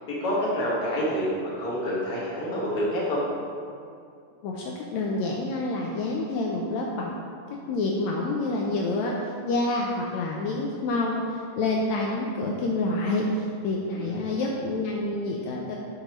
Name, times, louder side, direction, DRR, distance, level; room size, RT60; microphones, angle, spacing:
voice 1, 0.1-3.2 13.9-14.3, equal, 40° left, -7 dB, 1.5 m, -28 dB
voice 2, 4.4-7.1 7.7-15.8, left 2 dB, 85° left, -1 dB, 1.6 m, -28 dB
10.0 x 5.2 x 3.1 m, 2.4 s
omnidirectional pair, 3.8 m